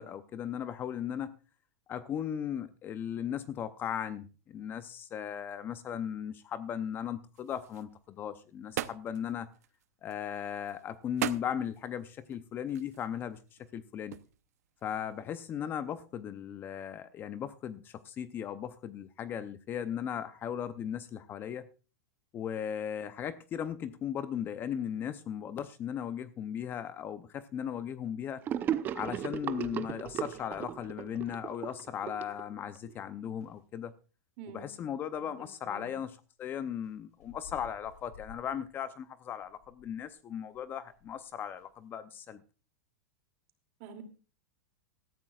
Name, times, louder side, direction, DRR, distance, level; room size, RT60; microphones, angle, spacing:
voice 1, 0.0-1.4 1.9-9.5 10.0-13.4 13.7-14.2 14.8-21.7 22.3-28.4 28.9-33.9 34.5-42.4, left 9 dB, 25° left, 0.6 m, -37 dB
sound 1, 7.3-15.2, right 12 dB, 80° right, 0.8 m, -42 dB
Gurgling / Sink (filling or washing), 28.5-32.9, right 10 dB, 25° right, 0.6 m, -36 dB
sound 2, 32.0-32.5 32.9-33.1 33.4-33.7 35.1-35.3 36.8-41.3 41.6-41.8, left 5 dB, 90° left, 4.4 m, -56 dB
voice 2, 34.4-34.7 35.1-35.9 43.8-44.0, right 6 dB, 50° right, 2.6 m, -48 dB
17.5 x 13.5 x 2.4 m
supercardioid pair, 145°, 8 cm